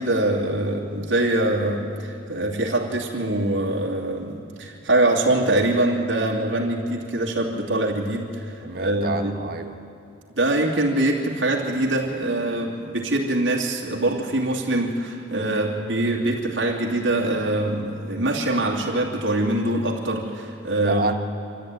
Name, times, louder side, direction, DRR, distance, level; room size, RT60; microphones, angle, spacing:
voice 1, 0.0-9.4 10.4-21.1, right 1 dB, 70° right, -2 dB, 2.8 m, -23 dB
voice 2, 8.6-9.8 20.8-21.1, right 3 dB, 50° right, 5 dB, 1.4 m, -28 dB
25.0 x 14.0 x 9.3 m, 2.7 s
head